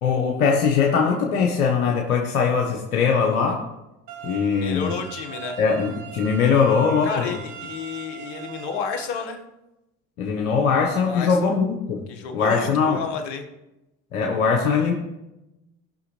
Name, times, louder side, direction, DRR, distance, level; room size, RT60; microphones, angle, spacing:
voice 1, 0.0-3.6 4.2-4.9 5.6-7.3 10.2-12.0 12.3-13.0 14.1-14.9, left 5 dB, 90° left, 0 dB, 1.3 m, -21 dB
sound 1, 4.1-9.1, right 7 dB, 60° right, 1.2 m, -40 dB
voice 2, 4.5-5.6 7.0-9.4 11.0-11.6 12.1-13.5, left 6 dB, 70° left, 5 dB, 1.7 m, -31 dB
18.0 x 6.0 x 3.3 m, 0.94 s
hypercardioid pair, 65°, 42 cm